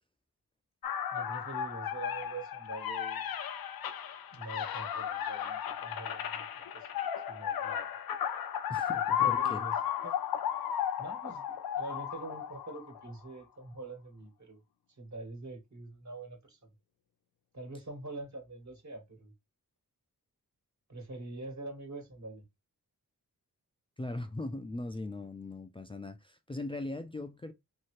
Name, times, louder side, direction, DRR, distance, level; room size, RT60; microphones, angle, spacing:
sound 1, 0.8-13.1, left 9 dB, 75° left, 0.5 m, -34 dB
voice 1, 1.1-3.3 4.3-6.5 6.7-6.9 7.3-7.9 8.9-9.7 10.0-10.1 11.0-14.6 15.0-16.7 17.5-19.3 20.9-22.4, right 2 dB, 50° right, 1.4 m, -44 dB
voice 2, 8.7-9.6 24.0-27.5, left 2 dB, 15° left, 0.4 m, -39 dB
2.8 x 2.8 x 3.0 m
cardioid pair, 65°, 36 cm